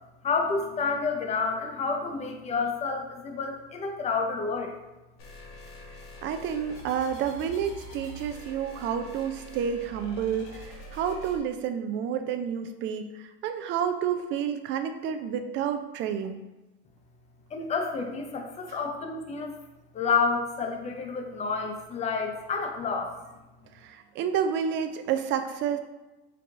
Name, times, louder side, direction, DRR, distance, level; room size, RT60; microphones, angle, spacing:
voice 1, 0.2-4.8 17.5-19.6 19.9-23.3, left 4 dB, 20° left, 3 dB, 0.6 m, -29 dB
sound 1, 5.2-11.4, equal, 70° left, 1.4 m, -45 dB
voice 2, 6.2-16.4 18.7-18.8 23.7-25.8, right 8 dB, 40° right, 8 dB, 0.4 m, -30 dB
4.6 x 2.4 x 3.6 m, 1.1 s
supercardioid pair, 120°, 30 cm